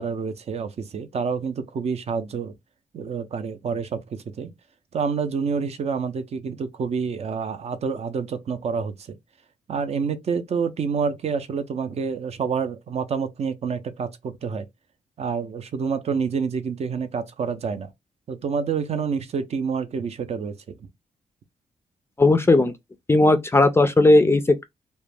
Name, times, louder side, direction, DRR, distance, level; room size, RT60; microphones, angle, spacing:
voice 1, 0.0-2.5 2.9-4.5 4.9-9.2 9.7-14.7 15.2-17.9 18.3-20.6, right 5 dB, 50° right, 0.4 m, -28 dB
voice 2, 22.2-22.7 23.1-24.6, left 2 dB, 20° left, 0.3 m, -16 dB
2.3 x 2.1 x 3.2 m
cardioid pair, 100°, 14 cm